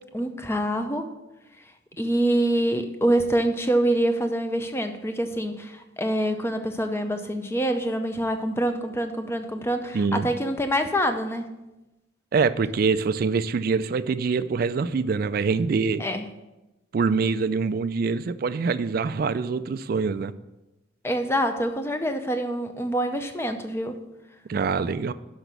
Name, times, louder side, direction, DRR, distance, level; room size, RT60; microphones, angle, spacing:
voice 1, 0.1-1.1 2.0-11.5 16.0-16.2 21.0-24.0, right 1 dB, 15° left, 7 dB, 0.6 m, -25 dB
voice 2, 9.9-10.3 12.3-16.0 16.9-20.3 24.5-25.1, right 4 dB, 50° right, 13 dB, 0.3 m, -24 dB
6.0 x 6.0 x 6.7 m, 0.99 s
head